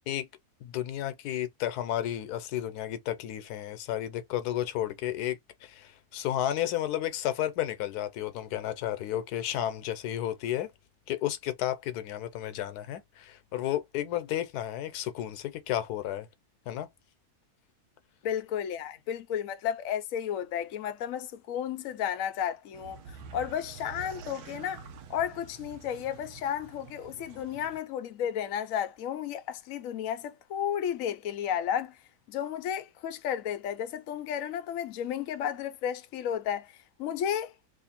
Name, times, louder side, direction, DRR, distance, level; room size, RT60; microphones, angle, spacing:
voice 1, 0.6-10.7 11.1-16.3 16.7-16.9, left 12 dB, 85° left, 1.1 m, -32 dB
voice 2, 18.2-24.8 25.1-32.0 32.3-36.7 37.0-37.5, left 9 dB, 65° left, 1.0 m, -33 dB
sound 1, 22.7-27.8, right 6 dB, 80° right, 1.1 m, -47 dB
3.1 x 2.5 x 4.2 m
omnidirectional pair, 1.6 m